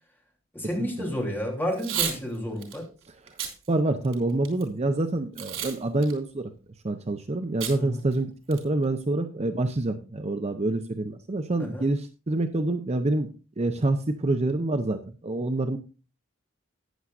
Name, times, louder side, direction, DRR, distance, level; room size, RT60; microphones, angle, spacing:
voice 1, 0.5-2.9 7.8-8.0 11.6-11.9, equal, 10° left, 0 dB, 3.1 m, -31 dB
Packing tape duct tape / Tearing, 1.7-2.2 2.6-2.8 3.3-3.5 4.0-4.6 5.4-5.8 6.0-6.1 7.6-7.8 8.1-8.2 8.5-8.8, right 9 dB, 90° right, 3.4 m, -31 dB
voice 2, 3.7-6.5 6.8-13.3 13.6-15.8, right 2 dB, 35° right, 8 dB, 0.7 m, -27 dB
14.5 x 9.5 x 2.5 m, 0.33 s
head